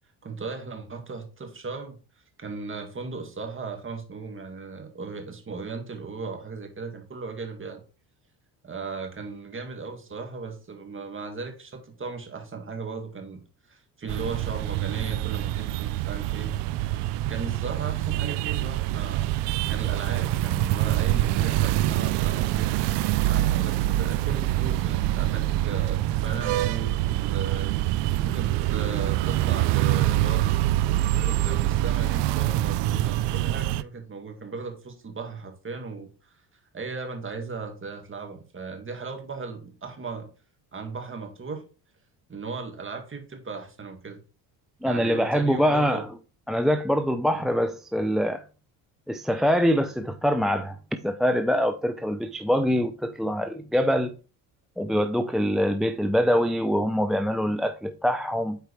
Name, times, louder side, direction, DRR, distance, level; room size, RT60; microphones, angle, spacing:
voice 1, 0.2-2.0 2.4-7.8 8.6-16.8 17.3-19.2 19.7-22.7 23.2-30.6 31.1-36.4 36.7-40.3 40.7-41.6 42.3-44.2 44.8-46.1 47.3-47.6, right 4 dB, 25° right, 2.0 m, -37 dB
sound 1, 14.1-33.8, right 15 dB, 70° right, 0.6 m, -25 dB
voice 2, 44.8-46.0 46.5-48.4 49.1-50.8 51.0-54.1 54.8-58.6, equal, ahead, 0.4 m, -24 dB
8.3 x 4.6 x 3.3 m
supercardioid pair, 85°, 44 cm